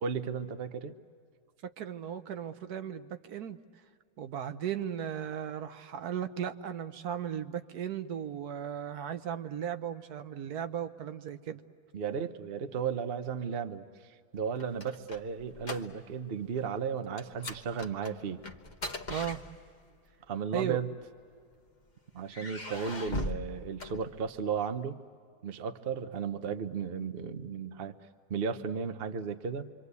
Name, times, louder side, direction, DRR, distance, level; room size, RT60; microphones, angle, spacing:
voice 1, 0.0-0.9 11.9-18.5 20.3-20.9 22.1-25.0 25.4-27.9 28.3-29.7, right 6 dB, 45° right, 9 dB, 1.0 m, -35 dB
voice 2, 1.8-3.6 4.2-11.6 19.1-19.4 20.5-20.8, right 9 dB, 75° right, 9 dB, 1.4 m, -36 dB
sound 1, 14.4-16.3 16.5-16.8 17.2-20.0 20.8-21.7 22.3-24.6, left 2 dB, 30° left, 1.2 m, -40 dB
26.5 x 25.0 x 8.2 m, 2.2 s
omnidirectional pair, 1.7 m